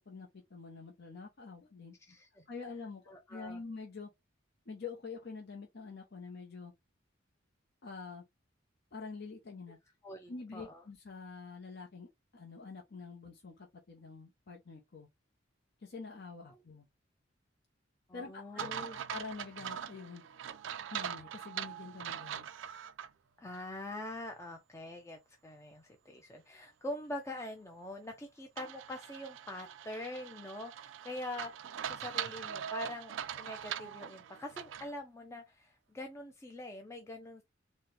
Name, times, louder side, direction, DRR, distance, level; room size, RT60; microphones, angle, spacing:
voice 1, 0.0-2.0 2.5-3.0 3.3-4.1 4.7-6.7 7.8-8.2 8.9-9.8 10.3-15.1 15.8-16.9 18.1-20.2 20.9-22.5, left 4 dB, 55° left, 0.7 m, -46 dB
voice 2, 2.1-2.4 3.1-3.6 10.0-10.8 16.4-16.6 18.1-19.0 23.4-37.4, left 1 dB, 15° left, 0.5 m, -44 dB
sound 1, 18.6-23.1 23.5-23.6 28.6-34.9, right 9 dB, 70° right, 0.4 m, -42 dB
4.2 x 2.1 x 3.3 m
head